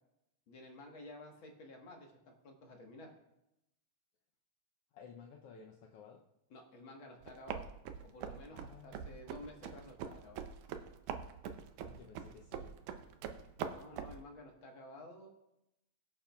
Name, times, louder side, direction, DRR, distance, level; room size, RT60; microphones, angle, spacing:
voice 1, 0.5-3.1 6.5-7.7 8.0-10.4 13.7-15.3, left 1 dB, 50° left, 1 dB, 1.9 m, -52 dB
voice 2, 4.9-6.2 8.5-9.2 11.8-12.8, left 6 dB, 70° left, 0 dB, 1.5 m, -55 dB
sound 1, 7.2-14.2, right 7 dB, 85° right, 2.2 m, -44 dB
22.0 x 8.8 x 2.4 m, 0.87 s
omnidirectional pair, 3.4 m